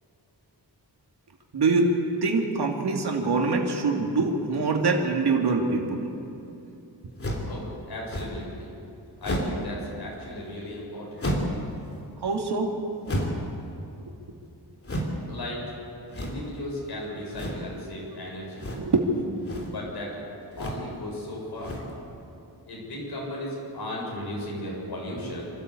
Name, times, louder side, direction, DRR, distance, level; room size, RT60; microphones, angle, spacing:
voice 1, 1.5-1.9 2.2-6.1 12.2-12.8 18.7-19.1, right 3 dB, 75° right, 0 dB, 2.6 m, -24 dB
sound 1, 7.2-7.6 8.1-8.5 9.2-9.7 11.2-11.6 13.1-13.5 14.8-15.2 16.1-16.5 17.3-17.7 18.6-19.0 19.3-19.8 20.5-20.9 21.6-22.0, equal, 35° left, 3.1 m, -31 dB
voice 2, 7.5-8.7 9.2-11.3 15.3-15.7 16.2-18.7 19.6-20.2 20.6-21.8 22.7-25.4, left 1 dB, 70° left, -3 dB, 7.3 m, -36 dB
26.5 x 13.5 x 8.4 m, 2.8 s
wide cardioid pair, 150°, 40 cm